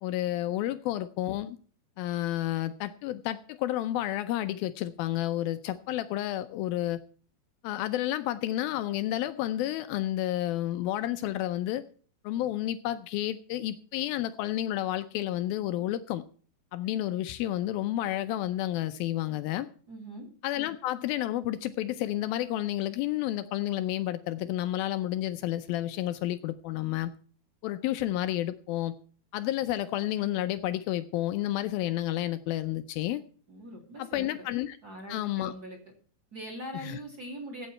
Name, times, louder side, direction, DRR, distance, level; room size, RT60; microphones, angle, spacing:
voice 1, 0.0-1.6 2.0-7.0 7.6-11.8 12.2-16.2 16.7-19.7 20.4-27.1 27.6-28.9 29.3-33.2 34.0-34.8 35.1-35.5 36.8-37.0, left 14 dB, 85° left, 10 dB, 2.1 m, -31 dB
voice 2, 19.9-20.3 33.5-34.3 34.8-35.8 36.3-37.7, right 1 dB, 25° right, 3 dB, 2.8 m, -42 dB
14.5 x 9.0 x 4.4 m, 0.42 s
omnidirectional pair, 5.0 m